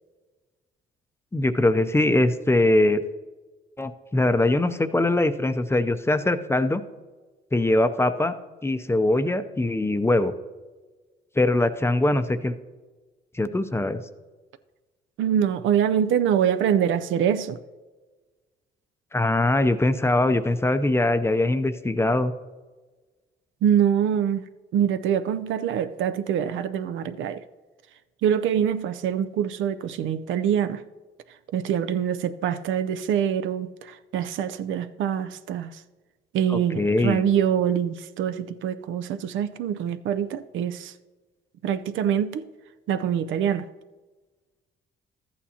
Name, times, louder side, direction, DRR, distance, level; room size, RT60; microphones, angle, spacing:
voice 1, 1.3-3.0 3.8-6.8 7.5-8.3 8.6-10.3 11.4-12.5 13.3-14.0 19.1-22.3 36.5-37.2, left 2 dB, 10° left, 0.5 m, -22 dB
voice 2, 15.2-17.6 23.6-24.4 24.7-27.4 28.2-30.8 31.5-35.8 36.3-40.9 41.6-42.5 42.9-43.7, right 9 dB, 80° right, 0.5 m, -24 dB
13.0 x 8.5 x 2.8 m
cardioid pair, 90°, 20 cm